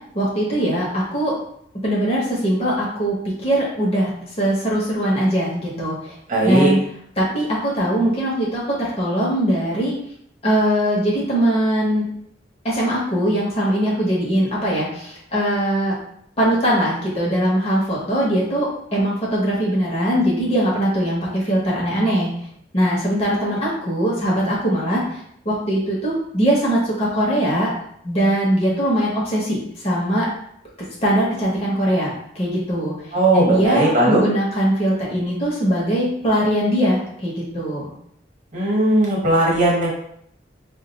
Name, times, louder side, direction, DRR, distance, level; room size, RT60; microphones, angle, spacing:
voice 1, 0.1-1.4 1.8-4.1 4.4-6.1 6.4-6.8 7.2-9.9 10.4-12.1 12.6-16.0 16.4-22.3 22.7-27.7 28.0-29.6 29.8-30.3 31.0-33.0 33.3-37.9, equal, 35° left, -5 dB, 0.8 m, -21 dB
voice 2, 6.3-6.7 33.1-34.2 38.5-39.9, right 2 dB, 45° right, -4 dB, 0.9 m, -17 dB
2.2 x 2.2 x 3.8 m, 0.69 s
head